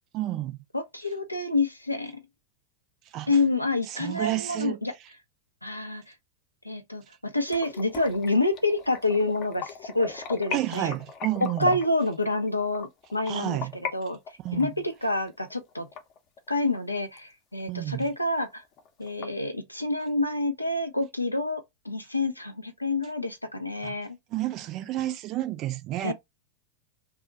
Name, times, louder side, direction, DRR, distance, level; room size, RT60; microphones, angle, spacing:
voice 1, 0.1-0.6 3.1-3.3 3.9-4.8 10.5-11.8 13.3-13.7 14.4-14.7 17.7-18.0 23.8-23.9 24.3-26.1, right 15 dB, 35° right, 0.4 m, -30 dB
voice 2, 0.7-2.1 3.3-4.9 5.6-6.0 6.6-11.0 11.4-14.2 14.5-15.9 16.5-18.6 19.0-24.2 26.0-26.1, left 2 dB, 85° left, 0.4 m, -28 dB
sound 1, 7.5-13.9 14.3-16.8 17.2-17.3 17.7-17.8 18.1-18.2 18.5-19.2, left 5 dB, 35° left, 0.6 m, -38 dB
2.3 x 2.1 x 3.7 m
figure-of-eight pair, 90°, 0 cm